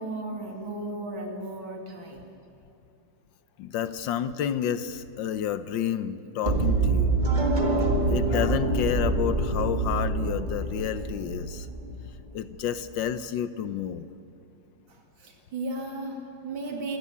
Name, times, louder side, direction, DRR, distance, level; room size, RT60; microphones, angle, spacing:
voice 1, 0.0-2.3 14.9-17.0, right 2 dB, 75° right, 2 dB, 3.3 m, -35 dB
voice 2, 3.6-7.2 8.1-11.7 12.3-14.1, left 9 dB, 70° left, 13 dB, 1.3 m, -30 dB
sound 1, 6.4-12.4, right 3 dB, 20° right, 1.9 m, -26 dB
26.0 x 13.5 x 8.4 m, 2.6 s
omnidirectional pair, 2.2 m